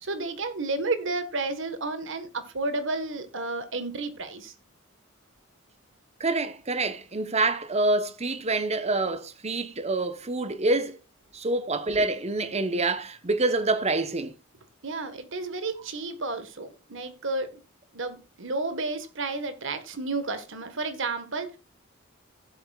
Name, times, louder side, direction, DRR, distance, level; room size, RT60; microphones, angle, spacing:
voice 1, 0.0-4.5 14.8-17.6 17.9-21.6, right 3 dB, 65° right, 1.6 m, -31 dB
voice 2, 6.2-11.0 11.3-14.3, right 2 dB, 30° right, 1.0 m, -26 dB
16.5 x 7.9 x 2.4 m
head